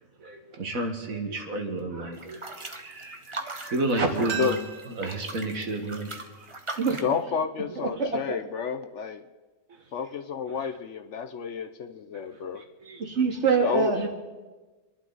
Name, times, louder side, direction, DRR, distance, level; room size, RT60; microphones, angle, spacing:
voice 1, 0.2-4.6 5.0-6.5 12.6-13.0, right 2 dB, 70° right, 3 dB, 2.1 m, -31 dB
sound 1, 2.1-7.2, right 2 dB, 20° right, 1.1 m, -40 dB
sound 2, 4.3-7.1 7.4-7.5, right 8 dB, 90° right, 2.0 m, -40 dB
voice 2, 7.0-9.2 9.9-12.6 13.6-13.9, left 6 dB, 60° left, 9 dB, 0.9 m, -30 dB
voice 3, 7.8-8.4 13.0-14.1, right 5 dB, 50° right, 2 dB, 2.4 m, -25 dB
26.5 x 11.5 x 4.0 m, 1.3 s
omnidirectional pair, 1.5 m